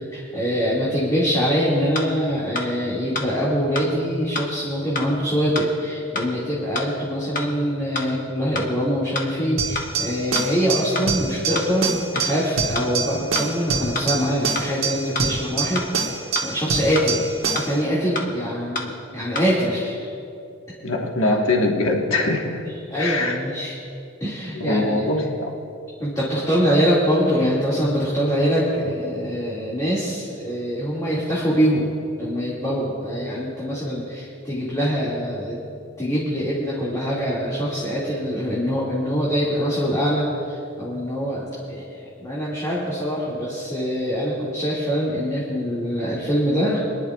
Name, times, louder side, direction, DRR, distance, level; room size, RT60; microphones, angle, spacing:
voice 1, 0.1-20.1 21.2-21.3 22.9-23.7 24.2-25.0 26.0-35.6 36.0-46.8, equal, 15° left, -8 dB, 2.0 m, -24 dB
sound 1, 1.9-2.0 2.5-2.7 3.1-3.2 3.7-3.9 4.3-4.4 4.9-5.1 5.5-5.7 6.1-6.3 6.7-6.9 7.3-7.5 7.9-8.1 8.5-8.7 9.1-9.2 9.7-9.9 10.3-10.4 10.9-11.1 11.5-11.7 12.1-12.3 12.7-12.9 13.3-13.5 13.9-14.0 14.5-14.7 15.1-15.3 15.7-15.9 16.3-16.4 16.9-17.1 17.5-17.6 18.1-18.3 18.7-18.9 19.3-19.5, left 3 dB, 40° left, 1.2 m, -27 dB
sound 2, 9.6-17.8, right 5 dB, 75° right, 1.4 m, -26 dB
voice 2, 20.8-22.4 23.0-23.4 24.5-25.5, left 2 dB, 70° left, 1 dB, 1.4 m, -22 dB
26.5 x 11.0 x 2.3 m, 2.5 s
head